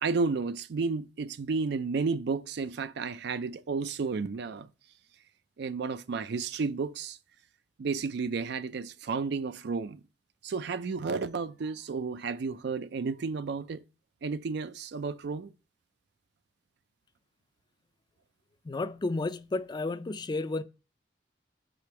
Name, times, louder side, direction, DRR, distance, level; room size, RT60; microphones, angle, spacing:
voice 1, 0.0-4.7 5.6-7.2 7.8-10.0 10.4-13.8 14.2-15.5, right 4 dB, 65° right, 0.4 m, -32 dB
voice 2, 18.6-20.6, left 3 dB, 25° left, 0.4 m, -32 dB
5.0 x 4.1 x 5.8 m
head